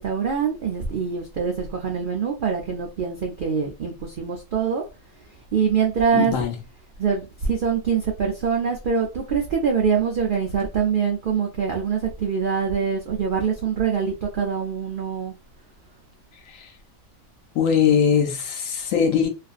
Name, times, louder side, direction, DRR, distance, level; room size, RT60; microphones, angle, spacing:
voice 1, 0.0-4.8 5.5-6.3 7.0-15.3, right 6 dB, 85° right, 0.4 m, -24 dB
voice 2, 6.1-6.5 16.5-16.7 17.5-19.3, left 7 dB, 75° left, 0.9 m, -21 dB
2.5 x 2.5 x 2.4 m
omnidirectional pair, 1.4 m